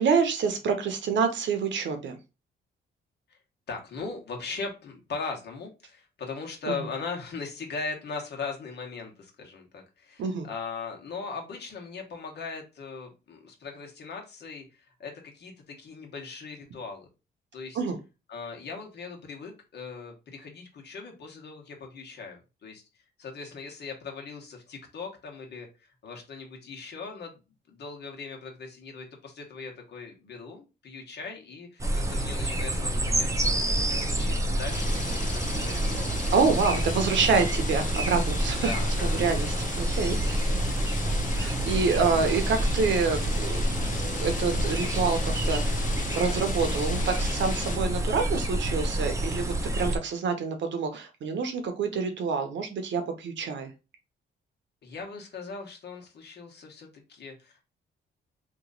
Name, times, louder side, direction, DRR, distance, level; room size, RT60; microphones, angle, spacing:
voice 1, 0.0-2.2 6.6-6.7 10.2-10.5 17.7-18.0 36.3-38.7 39.0-40.6 41.4-45.8 46.1-53.7, right 5 dB, 65° right, 6 dB, 0.9 m, -27 dB
voice 2, 3.7-17.1 17.5-17.8 18.3-22.8 23.2-27.4 27.7-36.1 38.6-39.2 54.8-57.6, left 4 dB, 60° left, 2 dB, 1.3 m, -39 dB
sound 1, 31.8-50.0, right 1 dB, 15° right, 0.7 m, -28 dB
sound 2, 34.7-47.8, left 5 dB, 40° left, 0.6 m, -38 dB
3.0 x 2.5 x 3.9 m, 0.28 s
cardioid pair, 90°, 20 cm